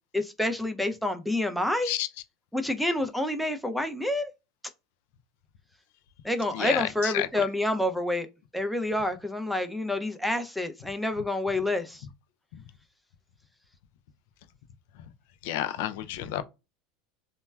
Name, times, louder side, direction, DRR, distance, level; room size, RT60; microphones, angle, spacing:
voice 1, 0.1-1.9 2.5-4.3 6.2-8.3 8.5-12.0, left 1 dB, ahead, 0.5 m, -28 dB
voice 2, 6.5-7.3 15.4-16.4, left 13 dB, 70° left, 0.3 m, -30 dB
3.1 x 2.0 x 2.2 m
hypercardioid pair, 90°, 0 cm